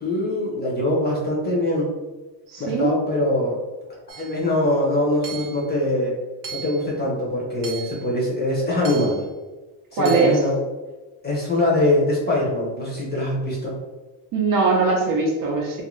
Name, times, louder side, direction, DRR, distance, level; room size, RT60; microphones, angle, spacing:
voice 1, 0.0-1.9 2.6-3.6 4.2-6.1 6.5-9.2 9.9-10.6 11.2-13.7, left 1 dB, 20° left, -4 dB, 0.5 m, -23 dB
voice 2, 2.5-2.9 10.0-10.4 14.3-15.8, right 4 dB, 45° right, 0 dB, 0.6 m, -20 dB
Hammer / Chink clink, 4.1-4.4 5.2-5.7 6.4-6.9 7.6-8.1 8.8-9.3 10.0-10.4, right 7 dB, 80° right, 0.8 m, -36 dB
2.6 x 2.5 x 2.9 m, 1.2 s
cardioid pair, 155°, 48 cm